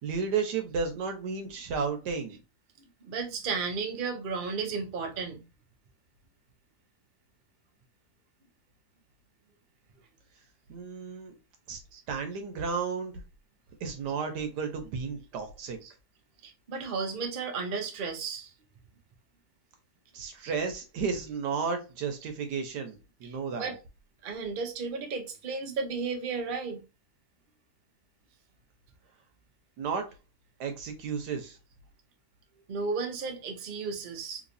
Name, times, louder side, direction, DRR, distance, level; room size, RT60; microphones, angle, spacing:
voice 1, 0.0-2.4 10.7-11.3 11.7-11.8 12.1-13.2 13.8-15.8 20.1-23.7 29.8-30.1 30.6-31.6, right 5 dB, 80° right, 1.4 m, -33 dB
voice 2, 3.0-5.4 11.9-12.0 15.8-15.9 16.4-18.5 20.4-20.5 23.2-23.8 24.2-26.8 32.7-34.4, right 4 dB, 45° right, 0.7 m, -34 dB
3.3 x 3.1 x 2.6 m
omnidirectional pair, 1.8 m